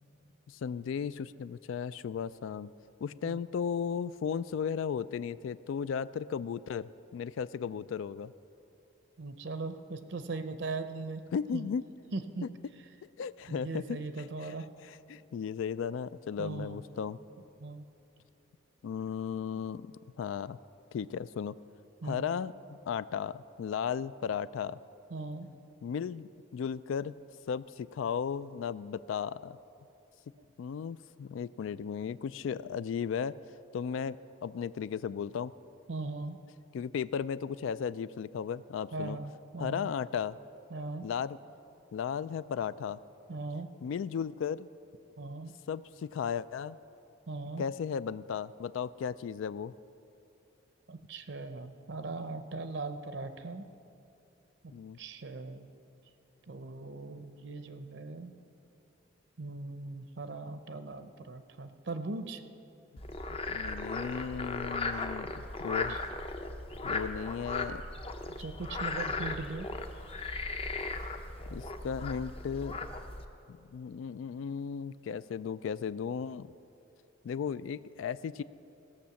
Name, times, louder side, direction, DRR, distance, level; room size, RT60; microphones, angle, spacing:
voice 1, 0.5-2.7 3.0-8.3 11.3-11.8 12.4-12.5 13.2-14.5 14.9-17.2 18.8-20.6 20.9-21.6 22.0-24.8 25.4-25.5 25.8-27.2 27.5-29.6 30.6-33.4 33.7-34.2 34.4-35.5 36.7-39.2 39.6-40.4 41.0-41.4 41.9-43.0 43.8-44.7 45.7-46.8 47.6-49.7 54.7-55.0 63.3-66.0 66.8-67.8 71.5-72.8 73.5-76.5 77.2-78.4, left 7 dB, 80° left, 16 dB, 0.3 m, -35 dB
voice 2, 9.2-11.2 11.5-11.6 12.1-12.5 13.5-14.7 16.4-16.8 17.6-17.8 22.0-22.3 25.1-25.5 35.9-36.4 38.9-39.9 40.7-41.1 43.3-43.7 45.2-45.5 47.3-47.6 50.9-53.7 54.6-55.7 56.5-58.3 59.4-62.4 65.9-66.0 68.4-69.7, right 3 dB, 65° right, 10 dB, 0.6 m, -39 dB
Frog, 63.0-73.3, left 3 dB, 30° left, 0.6 m, -37 dB
16.5 x 6.3 x 7.0 m, 2.7 s
head